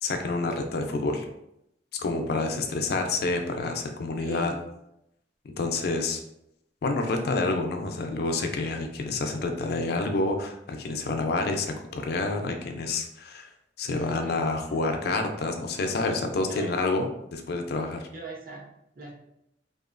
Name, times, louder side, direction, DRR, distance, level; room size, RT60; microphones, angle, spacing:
voice 1, 0.0-1.3 2.0-4.5 5.4-6.2 6.8-13.5 13.8-18.1, left 3 dB, 60° left, 4 dB, 0.4 m, -28 dB
voice 2, 4.2-4.6 13.9-14.4 16.5-16.8 18.1-18.7 18.9-19.1, right 1 dB, 55° right, -3 dB, 0.8 m, -40 dB
3.0 x 2.2 x 2.4 m, 0.81 s
head